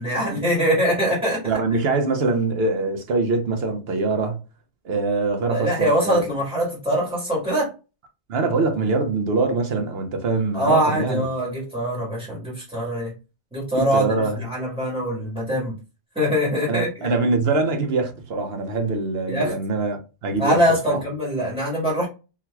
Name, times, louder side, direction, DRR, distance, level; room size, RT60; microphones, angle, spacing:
voice 1, 0.0-1.5 5.5-7.7 10.5-13.1 13.5-15.8 16.1-17.1 19.3-19.5 20.4-22.1, equal, 5° right, 1.5 m, -23 dB
voice 2, 1.4-4.4 4.8-6.2 8.3-11.3 13.7-14.4 16.7-21.0, right 3 dB, 70° right, 1.0 m, -23 dB
3.8 x 2.8 x 2.3 m
omnidirectional pair, 1.1 m